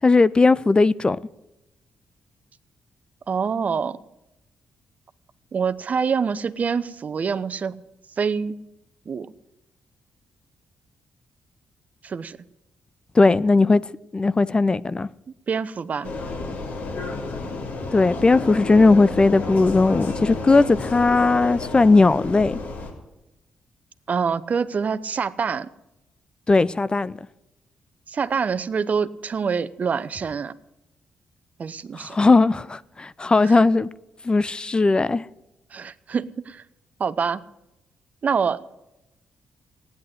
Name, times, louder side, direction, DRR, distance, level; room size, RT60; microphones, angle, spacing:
voice 1, 0.0-1.2 13.1-13.8 14.1-15.1 17.9-22.6 26.5-27.2 32.0-33.9 34.2-35.2, left 3 dB, 30° left, 0.6 m, -18 dB
voice 2, 3.3-4.0 5.5-7.8 8.2-8.6 9.1-9.3 12.0-12.4 15.5-16.1 24.1-25.7 28.1-30.5 31.6-32.2 33.4-33.6 35.7-36.6 37.0-37.4 38.2-38.6, right 6 dB, 50° right, 0.8 m, -25 dB
Vehicle, 16.0-22.9, left 3 dB, 65° left, 3.4 m, -31 dB
16.0 x 10.5 x 7.9 m
supercardioid pair, 50°, 3 cm